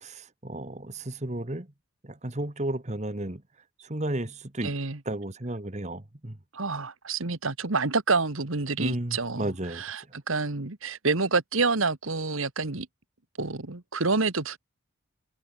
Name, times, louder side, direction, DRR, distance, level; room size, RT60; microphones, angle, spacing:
voice 1, 0.0-1.7 2.0-3.4 3.8-4.7 5.0-6.4 8.8-9.8, right 1 dB, 30° right, 1.5 m, -33 dB
voice 2, 4.6-5.0 6.5-12.9 13.4-14.6, right 3 dB, 70° right, 1.7 m, -28 dB
head